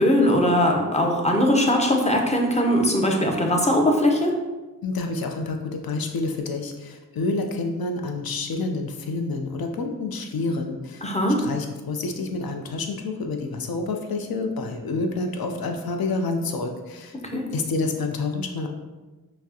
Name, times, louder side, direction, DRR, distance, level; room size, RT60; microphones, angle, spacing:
voice 1, 0.0-4.3 11.0-11.4 17.2-17.4, left 1 dB, 20° left, 1 dB, 0.6 m, -20 dB
voice 2, 4.8-11.1 11.4-17.2 17.5-18.7, left 3 dB, 75° left, 4 dB, 0.6 m, -28 dB
5.7 x 2.1 x 2.8 m, 1.2 s
wide cardioid pair, 75°, 36 cm